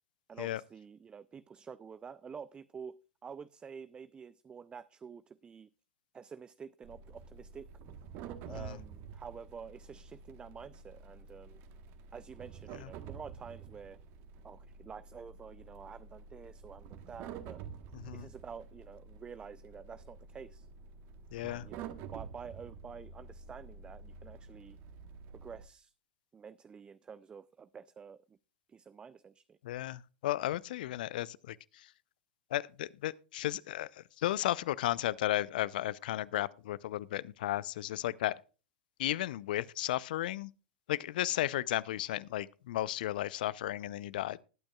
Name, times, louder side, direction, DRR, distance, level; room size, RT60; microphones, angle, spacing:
voice 1, 0.3-5.7 6.1-7.7 8.5-11.6 12.1-14.0 14.4-17.6 18.1-20.7 21.5-24.8 25.3-25.9 26.3-28.4 28.7-29.6, right 6 dB, 15° right, 0.4 m, -49 dB
sound 1, 6.8-25.7, right 6 dB, 45° right, 1.2 m, -49 dB
voice 2, 8.5-8.8 12.8-12.9 18.0-18.3 21.3-21.7 29.6-31.9 32.5-38.4 39.0-40.5 40.9-44.4, left 14 dB, 60° left, 0.6 m, -34 dB
20.0 x 8.8 x 2.3 m
hypercardioid pair, 100°, 5 cm